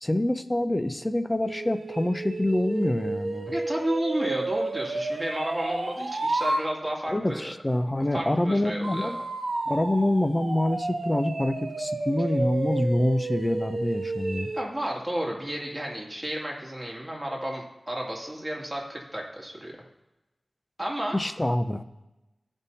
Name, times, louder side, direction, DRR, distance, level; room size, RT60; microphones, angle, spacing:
voice 1, 0.0-3.5 7.1-9.2 9.6-14.5 21.1-21.8, left 1 dB, 25° left, 9 dB, 0.6 m, -26 dB
sound 1, 1.4-6.6 8.8-14.7, right 2 dB, 80° right, 1.3 m, -31 dB
voice 2, 3.5-7.5 8.1-9.2 14.5-19.7 20.8-21.2, right 1 dB, 20° right, -2 dB, 2.4 m, -32 dB
14.5 x 5.4 x 2.8 m, 1.0 s
wide cardioid pair, 50°, 0 cm